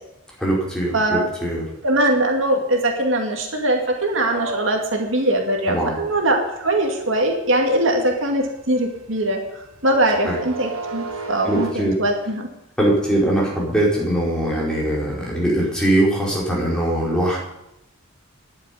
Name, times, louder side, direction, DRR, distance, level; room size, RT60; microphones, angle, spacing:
voice 1, 0.4-1.6 5.7-5.9 10.2-10.4 11.4-12.0 12.8-17.4, right 1 dB, 5° left, -5 dB, 4.8 m, -21 dB
voice 2, 1.8-9.4 9.8-12.5, right 1 dB, 65° right, 2 dB, 2.3 m, -21 dB
sound 1, 4.2-11.7, right 3 dB, 85° right, 1.7 m, -34 dB
11.0 x 9.4 x 10.0 m, 0.85 s
head